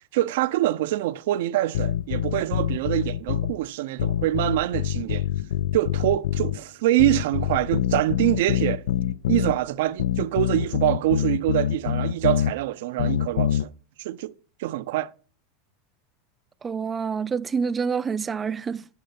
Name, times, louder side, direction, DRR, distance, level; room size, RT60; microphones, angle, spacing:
voice 1, 0.1-5.3 5.7-8.8 9.3-13.7 14.0-14.3 14.6-15.1, right 15 dB, 75° right, 0.5 m, -25 dB
sound 1, 1.7-3.6 4.0-6.6 7.0-9.6 10.0-12.5 13.0-13.7, left 11 dB, 90° left, 0.4 m, -25 dB
voice 2, 16.6-18.9, right 6 dB, 20° right, 0.4 m, -27 dB
8.4 x 6.7 x 5.8 m
supercardioid pair, 140°, 0 cm